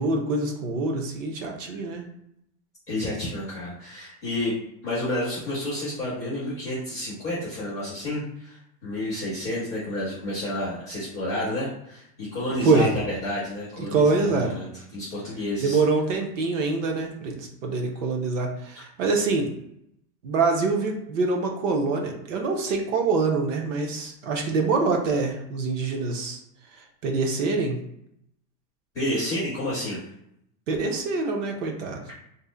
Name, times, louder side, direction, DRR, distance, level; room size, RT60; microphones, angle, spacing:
voice 1, 0.0-2.0 12.6-13.0 13.9-14.6 15.6-19.5 20.2-26.4 27.0-27.8 30.7-32.0, right 3 dB, 50° right, 2 dB, 0.6 m, -25 dB
voice 2, 2.9-4.5 4.8-15.8 28.9-30.0, left 1 dB, 5° left, -11 dB, 0.4 m, -30 dB
2.6 x 2.4 x 3.7 m, 0.76 s
supercardioid pair, 180°, 48 cm